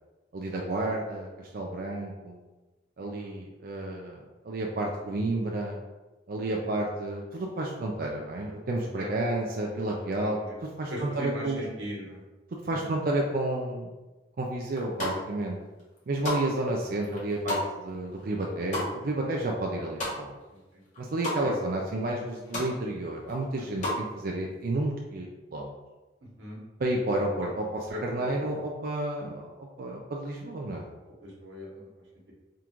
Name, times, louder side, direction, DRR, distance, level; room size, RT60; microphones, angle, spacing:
voice 1, 0.3-2.4 3.0-4.2 4.4-5.8 6.3-11.6 12.6-13.9 14.4-15.6 16.1-20.3 21.0-25.7 26.8-30.8, right 2 dB, 55° right, -1 dB, 0.4 m, -31 dB
voice 2, 3.0-3.3 6.5-6.6 9.0-9.1 10.2-10.6 10.9-12.2 12.7-12.9 20.5-20.6 21.4-21.5 26.4-26.6 27.9-28.0 31.2-31.9, equal, 90° right, -4 dB, 1.2 m, -39 dB
sound 1, 14.8-15.4 15.8-20.6 20.8-21.4 21.8-21.9 22.1-22.7 23.1-24.0, left 1 dB, 45° left, 1.4 m, -34 dB
3.7 x 2.4 x 4.4 m, 1.1 s
head